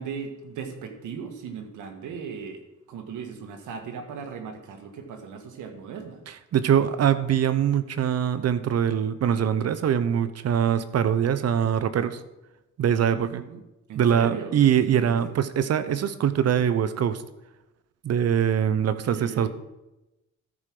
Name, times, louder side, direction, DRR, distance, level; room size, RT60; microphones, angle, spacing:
voice 1, 0.0-2.6 2.9-6.2 13.1-13.6 13.9-14.6 14.8-15.4 18.8-19.5, right 6 dB, 80° right, 6 dB, 1.7 m, -38 dB
voice 2, 6.5-12.2 12.8-13.4 13.9-17.2 18.0-19.5, right 9 dB, 55° right, 13 dB, 0.9 m, -23 dB
13.5 x 5.0 x 6.0 m, 0.95 s
cardioid pair, 90°, 30 cm